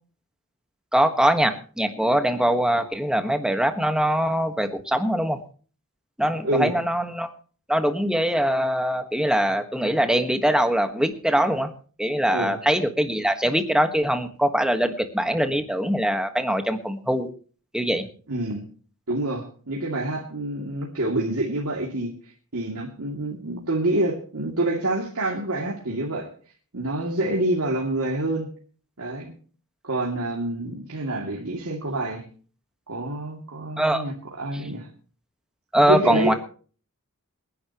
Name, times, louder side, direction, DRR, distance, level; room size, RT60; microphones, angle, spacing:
voice 1, 0.9-5.4 6.2-7.3 7.7-11.7 12.0-17.3 17.7-18.1 33.8-34.0 35.7-36.3, equal, 5° right, 7 dB, 1.5 m, -22 dB
voice 2, 6.4-6.8 12.3-12.6 18.3-18.6 19.1-22.1 22.5-26.3 26.7-28.5 29.0-29.3 29.8-32.3 32.9-34.9 35.9-36.4, right 1 dB, 75° right, -2 dB, 2.7 m, -27 dB
27.0 x 11.0 x 3.0 m, 0.41 s
head